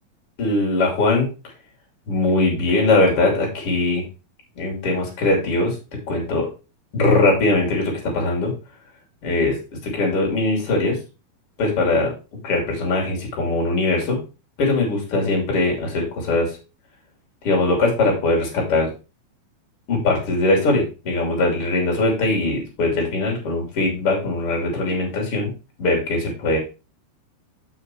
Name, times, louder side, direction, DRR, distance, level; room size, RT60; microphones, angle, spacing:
voice 1, 0.4-1.3 2.1-4.0 4.6-5.8 6.1-6.5 6.9-8.5 9.2-9.6 9.8-11.0 11.6-12.1 12.4-14.2 14.6-16.6 17.4-18.9 19.9-25.5 25.8-26.6, left 2 dB, 40° left, 0 dB, 3.5 m, -21 dB
6.9 x 5.8 x 4.5 m, 0.31 s
omnidirectional pair, 4.4 m